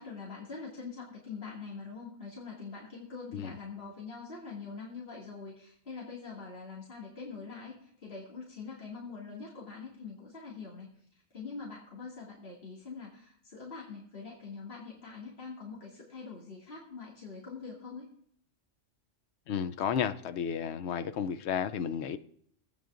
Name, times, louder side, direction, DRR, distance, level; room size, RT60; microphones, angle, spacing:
voice 1, 0.0-10.9 11.3-18.1, left 4 dB, 50° left, -5 dB, 2.5 m, -44 dB
voice 2, 19.5-22.2, left 8 dB, 65° left, 10 dB, 0.9 m, -32 dB
24.5 x 8.8 x 2.5 m, 0.66 s
omnidirectional pair, 1.3 m